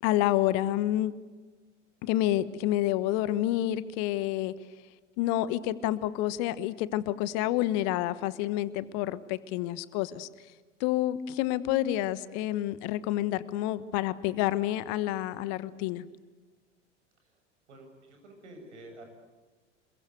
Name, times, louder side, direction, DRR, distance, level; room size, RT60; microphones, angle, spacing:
voice 1, 0.0-1.1 2.0-4.5 5.2-10.3 10.8-16.1, left 14 dB, 50° left, 16 dB, 1.2 m, -28 dB
voice 2, 17.7-19.0, right 1 dB, 70° right, 4 dB, 7.6 m, -49 dB
27.5 x 22.5 x 8.1 m, 1.3 s
figure-of-eight pair, 80°, 36 cm